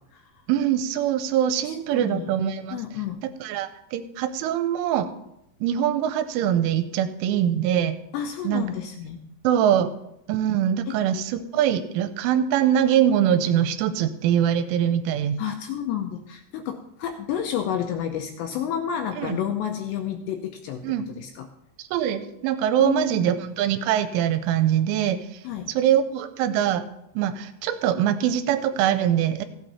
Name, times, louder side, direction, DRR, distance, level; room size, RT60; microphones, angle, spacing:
voice 1, 0.5-2.8 3.4-5.1 5.6-8.0 8.4-8.6 9.4-9.9 10.3-15.4 19.2-19.4 20.8-21.1 21.9-25.2 25.7-26.8 27.2-29.5, right 10 dB, 85° right, 10 dB, 3.1 m, -23 dB
voice 2, 1.6-2.3 2.7-3.2 8.1-9.2 9.5-9.6 10.9-11.0 15.4-20.8 21.2-21.5 22.8-23.4 25.4-25.7, left 9 dB, 85° left, 4 dB, 2.6 m, -30 dB
15.5 x 8.8 x 4.2 m, 0.81 s
omnidirectional pair, 5.7 m